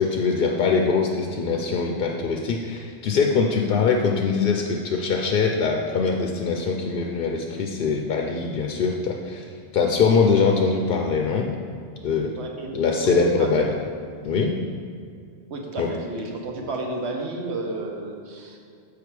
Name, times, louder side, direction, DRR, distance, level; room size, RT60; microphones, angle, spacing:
voice 1, 0.0-11.5 12.0-12.3 12.7-13.7 14.2-14.6 15.8-15.9, left 5 dB, 60° left, 2 dB, 0.6 m, -22 dB
voice 2, 12.4-13.7 15.5-18.6, right 3 dB, 75° right, 2 dB, 1.2 m, -32 dB
6.8 x 4.9 x 4.6 m, 2.3 s
omnidirectional pair, 1.1 m